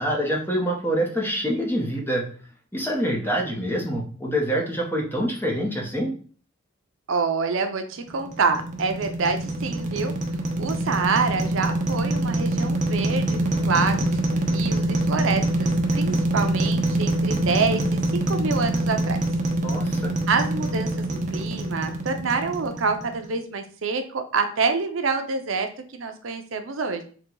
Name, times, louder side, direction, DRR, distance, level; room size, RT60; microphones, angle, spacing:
voice 1, 0.0-2.3 2.7-6.1 19.6-20.1, equal, 10° left, 0 dB, 0.8 m, -26 dB
voice 2, 3.2-3.7 7.1-10.1 10.6-19.2 20.3-27.0, right 4 dB, 75° right, 7 dB, 0.5 m, -27 dB
sound 1, 8.1-23.3, right 1 dB, 40° right, 0.7 m, -25 dB
3.9 x 2.3 x 4.6 m, 0.42 s
head